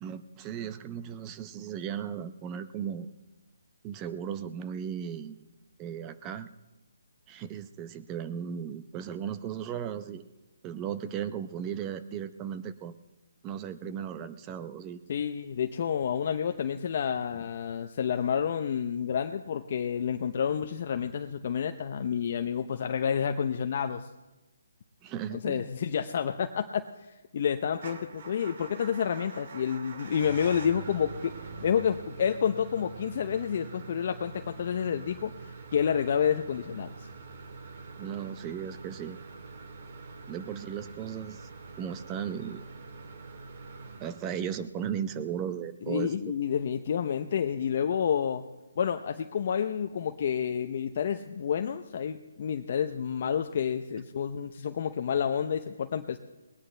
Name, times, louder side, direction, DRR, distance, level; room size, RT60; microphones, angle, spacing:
voice 1, 0.0-3.1 3.8-5.4 5.8-6.5 7.3-10.3 10.6-13.0 13.4-15.0 25.0-25.6 38.0-39.2 40.3-41.5 41.8-42.6 44.0-46.1, right 8 dB, 20° right, 12 dB, 0.7 m, -36 dB
voice 2, 15.1-24.1 25.4-26.9 27.3-31.3 31.6-36.9 45.9-48.4 48.8-56.2, left 8 dB, 45° left, 6 dB, 0.7 m, -29 dB
Motor vehicle (road) / Engine starting / Idling, 27.7-44.7, right 4 dB, 50° right, 1.8 m, -45 dB
19.5 x 19.0 x 3.3 m, 1.1 s
hypercardioid pair, 160°, 0 cm